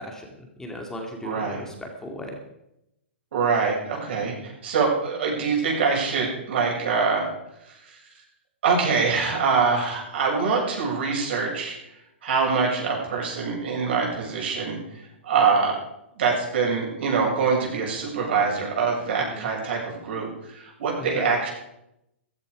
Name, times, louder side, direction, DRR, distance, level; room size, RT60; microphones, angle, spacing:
voice 1, 0.0-2.4 19.3-19.5 21.0-21.3, left 1 dB, 10° left, 2 dB, 2.3 m, -37 dB
voice 2, 1.2-1.6 3.3-7.3 7.6-8.0 8.6-11.8 12.2-14.8 15.2-15.8 16.2-21.5, right 5 dB, 60° right, -1 dB, 7.6 m, -24 dB
15.0 x 15.0 x 5.0 m, 0.86 s
hypercardioid pair, 120°, 7 cm